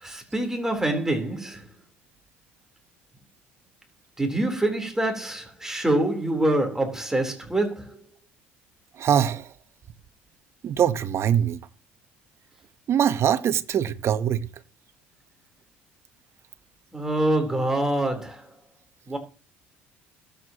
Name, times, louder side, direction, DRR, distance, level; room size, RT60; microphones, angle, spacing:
voice 1, 0.0-1.6 4.2-8.0 16.9-18.5 19.1-19.2, right 1 dB, 10° right, 4.0 m, -25 dB
voice 2, 9.0-9.5 10.6-11.6 12.9-14.5, right 9 dB, 50° right, 1.3 m, -23 dB
21.5 x 8.4 x 3.1 m
hypercardioid pair, 60°, 6 cm